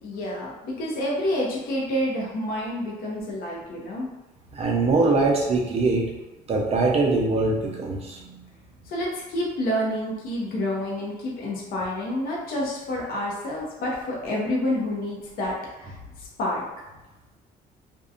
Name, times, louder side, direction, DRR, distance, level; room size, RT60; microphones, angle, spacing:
voice 1, 0.0-4.1 8.9-16.6, left 1 dB, 60° left, -3 dB, 0.7 m, -28 dB
voice 2, 4.5-6.1 6.5-8.4, right 3 dB, 35° right, -1 dB, 0.6 m, -22 dB
2.7 x 2.2 x 2.5 m, 1.0 s
cardioid pair, 110°, 17 cm